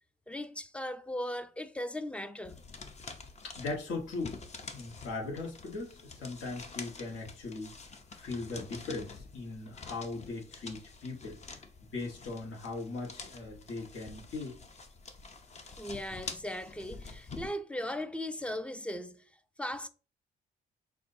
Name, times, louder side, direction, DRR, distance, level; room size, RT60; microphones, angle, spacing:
voice 1, 0.3-2.6 15.8-19.3 19.6-19.9, left 1 dB, 5° left, 0.4 m, -38 dB
sound 1, 2.4-17.5, left 4 dB, 35° left, 0.7 m, -47 dB
voice 2, 3.4-4.4 4.7-7.8 8.1-11.4 11.9-14.6, left 3 dB, 70° left, 1.5 m, -39 dB
6.0 x 2.6 x 2.7 m
cardioid pair, 90°, 20 cm